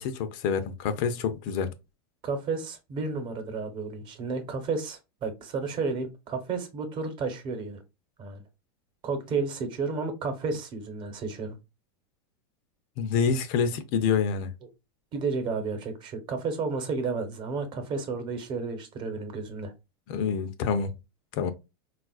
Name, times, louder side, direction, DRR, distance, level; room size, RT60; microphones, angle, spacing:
voice 1, 0.0-1.7 13.0-14.5 20.1-20.9 21.3-21.5, left 6 dB, 55° left, 0.5 m, -27 dB
voice 2, 2.2-7.8 8.2-8.4 9.0-11.6 15.1-19.7, right 4 dB, 40° right, 1.0 m, -32 dB
3.8 x 2.4 x 2.3 m
supercardioid pair, 120°, 13 cm